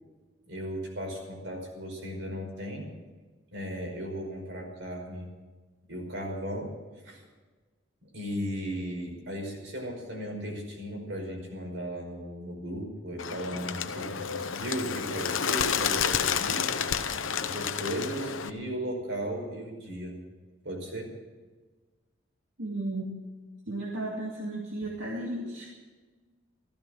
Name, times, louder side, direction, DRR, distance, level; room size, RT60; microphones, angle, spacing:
voice 1, 0.5-2.9 3.5-5.3 5.9-6.7 7.0-7.2 8.0-16.8 17.4-20.1 20.6-21.1, equal, 70° right, 1 dB, 5.1 m, -36 dB
Bird, 13.2-18.5, left 7 dB, 85° left, 1.0 m, -30 dB
voice 2, 22.6-23.1 23.7-25.7, right 1 dB, 85° right, -2 dB, 2.4 m, -34 dB
16.0 x 14.0 x 6.4 m, 1.3 s
head